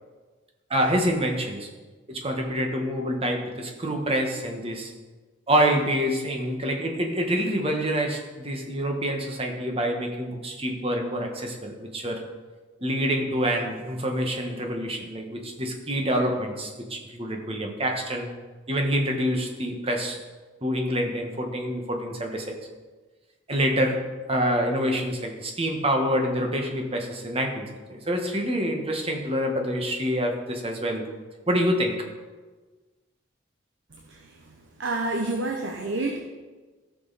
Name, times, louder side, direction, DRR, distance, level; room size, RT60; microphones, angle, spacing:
voice 1, 0.7-1.7 2.1-4.9 5.5-12.2 12.8-18.4 18.7-20.2 20.6-22.6 23.5-24.0 24.3-31.1 31.5-32.0, equal, 30° right, 3 dB, 1.3 m, -26 dB
voice 2, 34.8-36.2, right 2 dB, 65° right, 2 dB, 0.9 m, -28 dB
14.5 x 6.3 x 4.1 m, 1.3 s
head